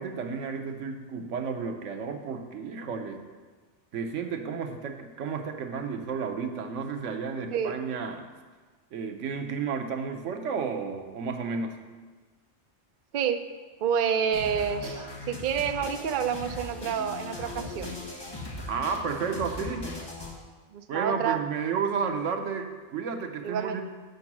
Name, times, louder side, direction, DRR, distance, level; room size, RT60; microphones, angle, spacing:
voice 1, 0.0-3.2 3.9-8.3 8.9-11.8 18.7-19.9 20.9-23.8, right 5 dB, 90° right, 5 dB, 1.2 m, -32 dB
voice 2, 13.8-17.9 20.7-21.4 23.4-23.8, right 7 dB, 55° right, 7 dB, 0.6 m, -28 dB
sound 1, 14.3-20.3, left 2 dB, 20° left, 1.5 m, -39 dB
7.9 x 6.1 x 6.0 m, 1.4 s
omnidirectional pair, 1.2 m